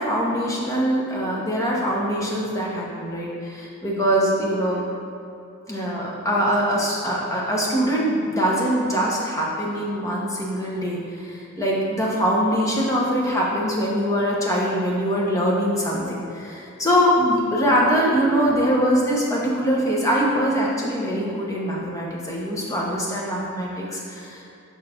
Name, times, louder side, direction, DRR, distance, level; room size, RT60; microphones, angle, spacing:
voice 1, 0.0-4.9 5.7-24.5, equal, 15° left, -4 dB, 0.8 m, -23 dB
5.5 x 4.3 x 4.4 m, 2.7 s
head